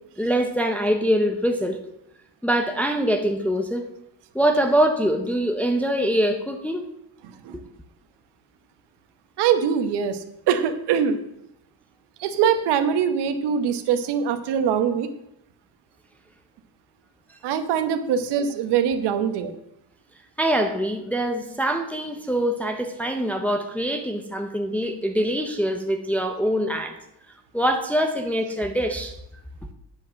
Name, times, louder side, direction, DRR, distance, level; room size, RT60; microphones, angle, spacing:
voice 1, 0.2-1.8 2.4-3.9 4.3-6.8 20.4-27.0 27.5-29.1, equal, 5° left, 4 dB, 0.5 m, -24 dB
voice 2, 9.4-11.2 12.2-15.1 17.4-19.5, right 8 dB, 65° right, 9 dB, 1.2 m, -23 dB
9.7 x 5.3 x 7.5 m, 0.81 s
cardioid pair, 165°, 44 cm